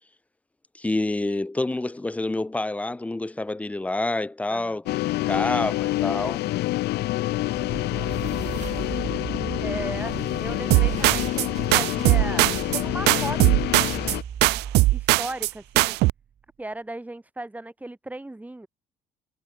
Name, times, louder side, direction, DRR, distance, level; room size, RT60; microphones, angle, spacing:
voice 1, 0.8-5.0 5.2-6.4, left 2 dB, 10° left, 0.6 m, -28 dB
voice 2, 4.5-4.8 7.5-8.2 9.6-14.2 14.9-16.0 16.6-18.7, right 2 dB, 10° right, 2.5 m, -37 dB
sound 1, 4.9-14.2, left 17 dB, 75° left, 0.9 m, -27 dB
sound 2, 6.9-16.1, right 8 dB, 45° right, 2.1 m, -37 dB
sound 3, 10.7-11.5 11.7-12.8 13.1-14.2 14.4-15.5 15.8-16.1, right 21 dB, 80° right, 0.4 m, -20 dB
cardioid pair, 110°, 17 cm